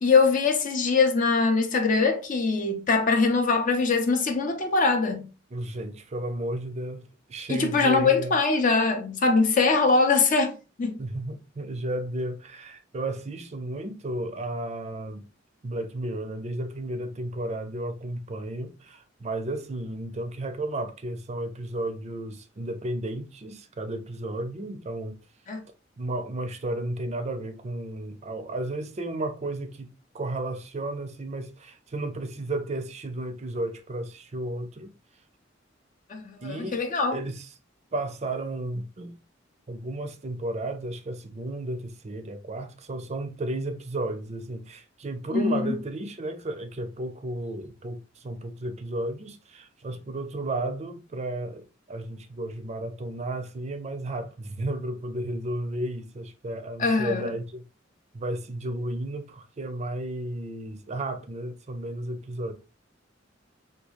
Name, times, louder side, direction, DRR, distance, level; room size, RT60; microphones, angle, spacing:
voice 1, 0.0-5.3 7.5-11.0 25.5-25.6 36.1-37.2 45.3-45.7 56.8-57.3, left 4 dB, 45° left, 0.5 m, -22 dB
voice 2, 5.5-7.0 7.3-8.3 11.0-15.2 15.6-25.2 26.0-29.9 30.1-34.9 36.4-36.8 37.1-37.5 37.9-39.1 39.7-57.6 58.1-62.5, right 1 dB, 35° right, 0.5 m, -33 dB
3.6 x 2.3 x 3.0 m
head